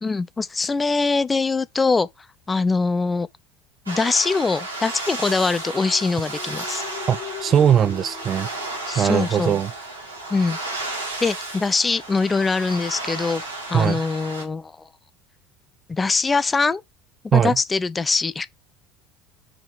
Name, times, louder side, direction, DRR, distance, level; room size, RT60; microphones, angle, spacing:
voice 1, 0.0-2.1 2.5-3.3 3.9-6.8 8.9-9.6 10.3-10.9 11.2-13.4 13.7-14.9 15.9-16.8 17.2-18.5, left 4 dB, 20° left, 0.4 m, -23 dB
sound 1, 3.9-14.4, right 2 dB, 85° right, 1.8 m, -33 dB
sound 2, 5.6-9.4, left 10 dB, 45° left, 1.1 m, -40 dB
voice 2, 7.1-8.5 9.0-9.7 13.7-14.0 17.3-17.6, right 9 dB, 40° right, 0.5 m, -20 dB
4.9 x 3.7 x 5.2 m
figure-of-eight pair, 70°, 0 cm